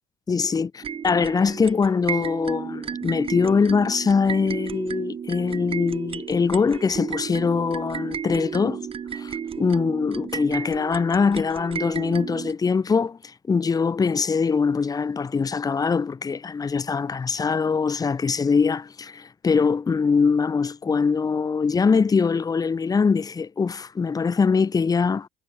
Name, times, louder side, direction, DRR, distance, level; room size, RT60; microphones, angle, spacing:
voice 1, 0.3-8.9 9.1-25.3, left 5 dB, 25° left, 1.1 m, -23 dB
sound 1, 0.8-12.5, right 7 dB, 35° right, 1.7 m, -33 dB
hypercardioid pair, 65°, 16 cm